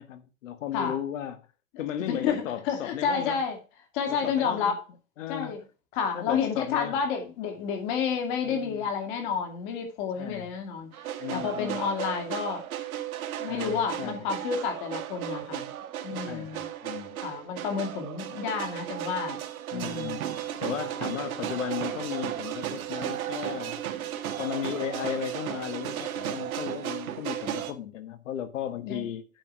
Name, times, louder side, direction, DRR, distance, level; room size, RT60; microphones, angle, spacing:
voice 1, 0.0-1.4 1.8-3.4 4.1-4.7 5.2-5.6 6.1-7.0 8.4-8.9 10.2-10.5 11.2-11.8 13.5-14.3 16.2-17.2 19.7-20.3 20.6-23.8 24.4-29.3, left 10 dB, 60° left, 1.6 m, -35 dB
voice 2, 2.1-3.6 3.9-4.8 5.3-5.6 5.9-10.9 11.3-12.6 13.4-15.7 16.0-16.7 17.2-19.4 19.7-20.4 28.8-29.1, left 6 dB, 35° left, 2.4 m, -30 dB
sound 1, 10.9-27.7, right 11 dB, 80° right, 1.5 m, -35 dB
8.8 x 6.2 x 4.6 m
supercardioid pair, 165°, 42 cm